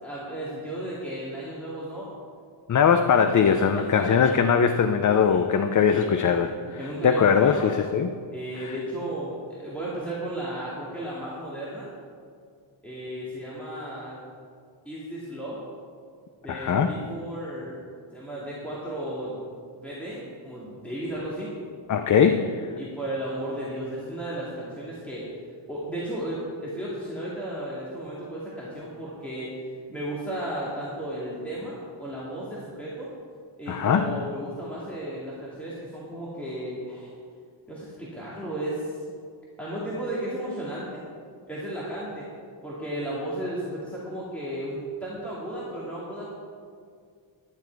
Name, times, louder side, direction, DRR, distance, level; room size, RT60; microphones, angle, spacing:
voice 1, 0.0-2.1 3.7-4.3 5.2-5.4 5.9-6.5 6.8-7.7 8.3-11.9 12.8-14.2 14.9-15.6 16.4-17.8 18.1-19.4 19.8-21.5 22.8-25.2 25.7-29.5 29.9-33.1 33.6-37.1 37.7-39.0 39.6-41.0 41.5-42.3 42.6-46.3, right 1 dB, 5° left, -8 dB, 2.1 m, -34 dB
voice 2, 2.7-8.1 8.6-8.7 16.5-17.0 21.9-22.7 33.7-34.1, left 6 dB, 40° left, 8 dB, 0.4 m, -21 dB
11.5 x 9.6 x 4.6 m, 2.1 s
wide cardioid pair, 160°, 49 cm